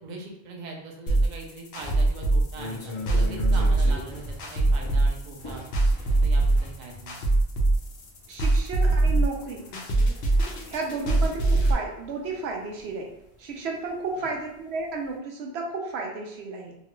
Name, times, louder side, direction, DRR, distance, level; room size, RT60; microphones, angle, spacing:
voice 1, 0.0-5.7 6.1-7.2 14.2-14.3, right 3 dB, 50° right, 1 dB, 0.6 m, -41 dB
sound 1, 1.1-11.7, right 2 dB, 75° left, 0.9 m, -22 dB
sound 2, 1.8-14.4 14.8-15.1, left 2 dB, 35° left, 0.6 m, -41 dB
voice 2, 8.3-9.7 10.7-13.1 13.4-16.8, right 3 dB, 80° right, 0 dB, 0.9 m, -33 dB
2.9 x 2.4 x 3.0 m, 0.81 s
omnidirectional pair, 1.1 m